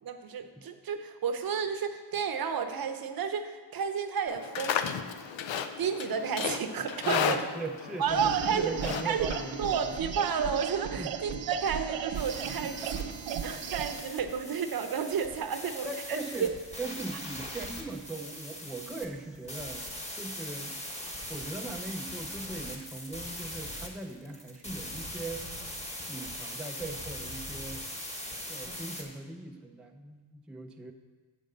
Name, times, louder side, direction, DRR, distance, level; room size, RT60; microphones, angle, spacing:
voice 1, 0.0-4.8 5.5-7.5 8.0-8.7 9.0-9.3 9.6-13.1 13.4-16.5, right 7 dB, 50° right, 8 dB, 0.8 m, -31 dB
Livestock farm animals working animals, 4.3-10.0, left 8 dB, 75° left, 0.6 m, -34 dB
voice 2, 7.1-10.0 11.0-11.1 15.6-16.5 16.8-19.9 20.2-20.8 21.3-25.4 26.1-27.9 28.5-30.9, right 2 dB, ahead, 3 dB, 0.4 m, -40 dB
sound 1, 8.1-14.0, right 8 dB, 85° right, 0.7 m, -36 dB
sound 2, 12.1-29.0, left 1 dB, 15° left, 1.4 m, -41 dB
7.3 x 5.2 x 6.5 m, 1.4 s
cardioid pair, 90°, 46 cm